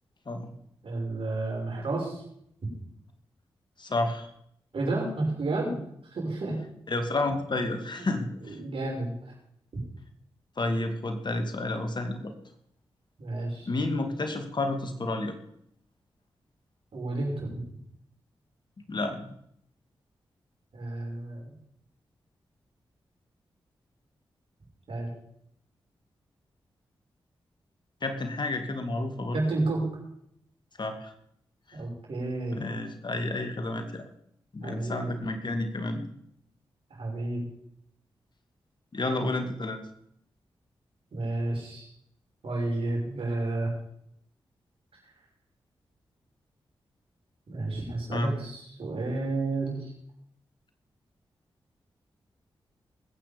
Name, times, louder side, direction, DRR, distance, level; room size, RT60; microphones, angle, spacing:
voice 1, 0.8-2.2 2.6-2.7 4.7-5.8 6.1-6.6 8.4-9.3 13.2-13.7 16.9-17.6 20.7-21.5 24.9-25.1 29.3-29.9 31.7-32.7 34.6-35.2 36.9-37.5 41.1-41.9 42.4-43.7 47.5-49.9, right 2 dB, 70° right, -1 dB, 5.9 m, -31 dB
voice 2, 3.8-4.3 6.9-8.6 10.6-12.3 13.7-15.4 18.9-19.3 28.0-29.4 30.8-31.1 31.7-31.8 32.5-34.1 34.5-36.1 38.9-39.8 48.1-48.3, left 2 dB, 50° left, 6 dB, 2.4 m, -30 dB
20.5 x 8.9 x 5.3 m, 0.71 s
supercardioid pair, 40°, 10 cm